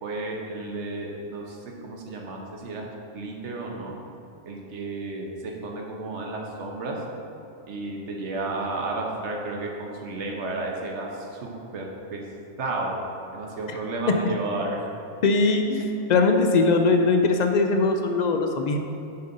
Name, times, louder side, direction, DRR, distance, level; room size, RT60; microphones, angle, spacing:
voice 1, 0.0-1.6 1.8-2.9 3.1-3.9 4.5-7.0 7.7-12.2 12.6-13.0 13.3-14.8 15.8-15.9, right 2 dB, 70° right, 0 dB, 1.2 m, -32 dB
voice 2, 15.2-18.8, left 3 dB, 65° left, 4 dB, 0.4 m, -21 dB
6.7 x 3.9 x 5.4 m, 2.9 s
omnidirectional pair, 1.2 m